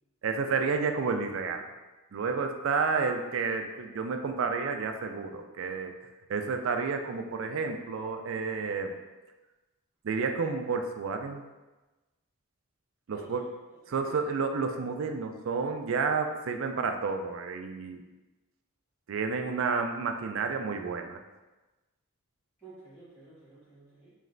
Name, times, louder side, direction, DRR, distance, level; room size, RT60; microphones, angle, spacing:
voice 1, 0.2-1.7 2.1-5.9 6.3-8.9 10.0-11.4 13.1-13.4 13.9-18.0 19.1-21.2, right 5 dB, 65° right, 5 dB, 0.4 m, -30 dB
voice 2, 13.9-14.2 22.6-24.1, right 3 dB, 5° left, -10 dB, 1.3 m, -52 dB
3.2 x 3.2 x 3.8 m, 1.1 s
head